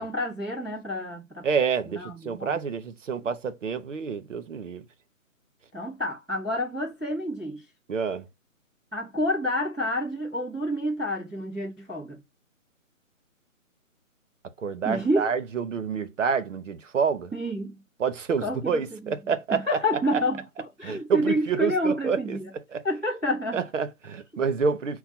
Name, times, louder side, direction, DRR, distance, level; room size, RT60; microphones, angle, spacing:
voice 1, 0.0-1.4 1.8-2.6 5.7-7.6 8.9-12.2 14.8-15.3 17.3-17.8 18.4-20.4 20.8-22.5 22.8-23.6, equal, 5° right, 0.6 m, -29 dB
voice 2, 1.4-4.8 7.9-8.3 14.6-17.3 18.0-19.6 20.8-22.4 22.7-22.8 23.5-25.0, right 6 dB, 60° right, 0.9 m, -28 dB
5.6 x 2.3 x 4.2 m
hypercardioid pair, 155°, 41 cm